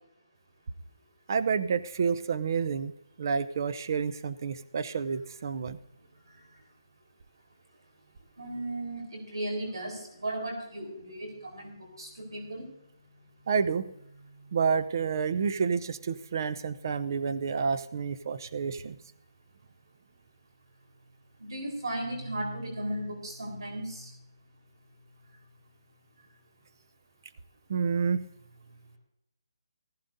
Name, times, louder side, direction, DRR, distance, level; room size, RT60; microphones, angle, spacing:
voice 1, 1.3-2.9 3.2-5.8 13.5-13.9 14.5-19.0 27.7-28.2, right 6 dB, 50° right, 12 dB, 0.7 m, -29 dB
voice 2, 8.4-12.7 21.4-24.1, right 1 dB, 85° right, 3 dB, 4.0 m, -36 dB
15.5 x 15.5 x 2.7 m, 0.80 s
hypercardioid pair, 160°, 2 cm